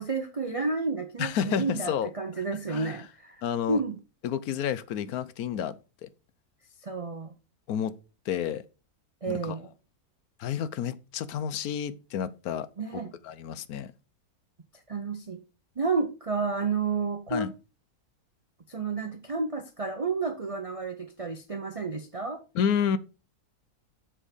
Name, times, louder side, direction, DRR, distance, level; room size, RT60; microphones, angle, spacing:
voice 1, 0.0-3.4 3.7-4.0 6.8-7.3 9.2-9.7 12.8-13.1 14.9-15.4 15.8-17.5 18.7-22.4, right 4 dB, 55° right, 0.3 m, -31 dB
voice 2, 1.2-2.1 2.7-3.0 3.4-3.8 4.2-5.7 6.0-6.1 7.7-7.9 8.3-8.6 9.3-9.6 10.4-12.7 13.2-13.9 17.3-17.5 22.5-23.0, left 8 dB, 75° left, 1.1 m, -30 dB
7.4 x 4.4 x 5.0 m
omnidirectional pair, 1.7 m